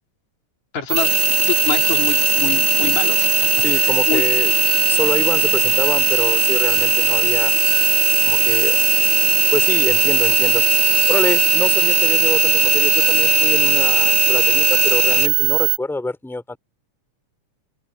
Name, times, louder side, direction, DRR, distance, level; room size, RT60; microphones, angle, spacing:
voice 1, 0.7-1.1 1.5-3.4 4.1-4.2, left 9 dB, 75° left, 3.7 m, -25 dB
sound 1, 0.9-15.8, right 15 dB, 85° right, 1.4 m, -19 dB
Engine, 1.0-15.3, left 6 dB, 35° left, 2.1 m, -21 dB
voice 2, 3.6-4.5 4.9-7.5 8.2-8.8 9.5-10.6 10.9-16.6, left 2 dB, ahead, 3.0 m, -27 dB
open air
omnidirectional pair, 3.3 m